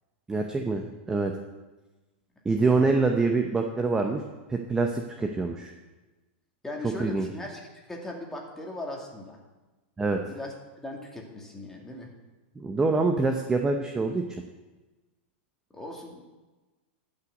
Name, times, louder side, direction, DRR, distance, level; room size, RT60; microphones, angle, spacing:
voice 1, 0.3-1.3 2.4-4.2 4.5-5.7 7.0-7.3 10.0-10.2 12.6-14.2, right 3 dB, 10° right, 4 dB, 0.8 m, -25 dB
voice 2, 2.6-3.0 6.6-7.6 7.9-9.4 10.3-10.5 10.8-12.1 15.7-16.2, left 1 dB, 5° left, 0 dB, 2.1 m, -38 dB
12.0 x 6.0 x 8.1 m, 1.2 s
supercardioid pair, 145°, 6 cm